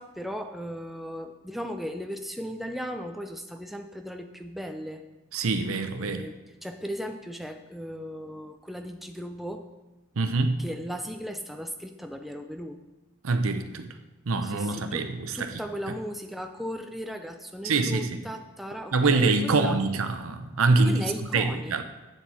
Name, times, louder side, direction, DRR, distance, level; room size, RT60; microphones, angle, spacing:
voice 1, 0.0-5.0 6.0-9.7 10.6-12.8 14.4-15.1 15.3-19.8 20.8-21.8, equal, ahead, 5 dB, 0.4 m, -37 dB
voice 2, 5.3-6.2 10.2-10.6 13.2-13.9 14.3-15.5 17.6-18.2 18.9-21.0 21.3-21.8, right 3 dB, 85° right, 8 dB, 0.7 m, -25 dB
7.9 x 7.2 x 4.2 m, 1.1 s
head